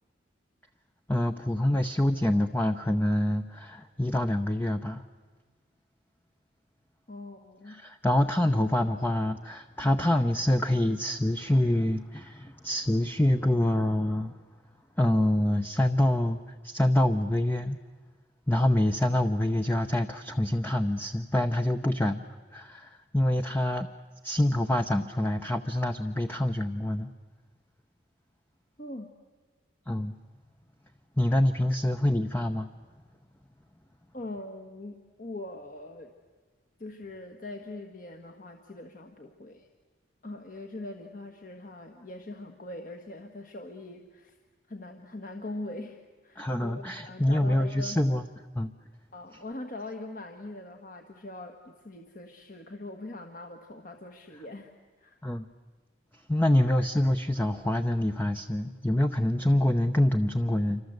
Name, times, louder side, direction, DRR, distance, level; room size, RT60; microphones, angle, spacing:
voice 1, 1.1-5.0 7.7-14.4 15.0-17.8 18.5-22.3 22.5-23.9 24.2-27.1 29.9-30.1 31.2-32.7 46.4-48.3 48.5-48.7 54.3-54.4 55.2-55.5 56.1-60.8, left 1 dB, 10° left, 6 dB, 0.7 m, -26 dB
voice 2, 7.1-7.8 28.8-29.1 34.1-36.1 36.8-39.7 40.2-44.4 44.7-48.0 49.1-54.7 55.0-55.2, left 2 dB, 45° left, 4 dB, 1.5 m, -42 dB
28.0 x 25.0 x 8.0 m, 1.5 s
head